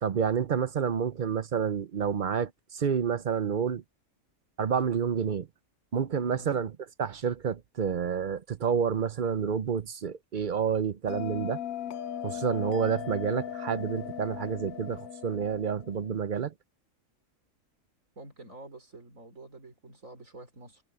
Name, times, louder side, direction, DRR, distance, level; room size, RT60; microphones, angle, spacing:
voice 1, 0.0-3.8 4.6-5.5 5.9-6.7 7.0-11.6 12.2-16.5, right 7 dB, 50° right, 0.6 m, -29 dB
Bell, 11.1-16.2, left 9 dB, 80° left, 1.1 m, -38 dB
voice 2, 18.2-20.8, right 2 dB, 70° right, 5.4 m, -48 dB
omnidirectional pair, 1.4 m